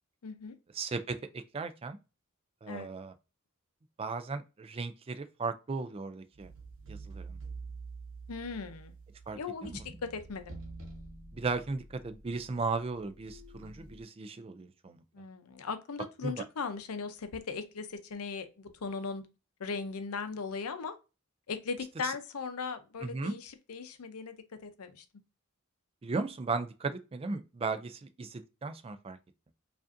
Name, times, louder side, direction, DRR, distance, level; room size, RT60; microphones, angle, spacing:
voice 1, 0.2-0.6 2.7-2.9 8.3-8.9 9.4-9.7 10.0-10.6 15.1-19.2 19.6-21.0 21.5-25.0, left 5 dB, 85° left, 0.6 m, -38 dB
voice 2, 0.7-2.0 2.6-3.1 4.0-6.5 6.9-7.4 9.3-9.9 11.3-15.0 16.2-16.4 22.0-22.1 23.0-23.3 26.0-29.2, right 4 dB, 25° right, 0.3 m, -36 dB
sound 1, 6.3-14.0, right 3 dB, 60° right, 1.0 m, -47 dB
4.9 x 2.5 x 2.5 m
head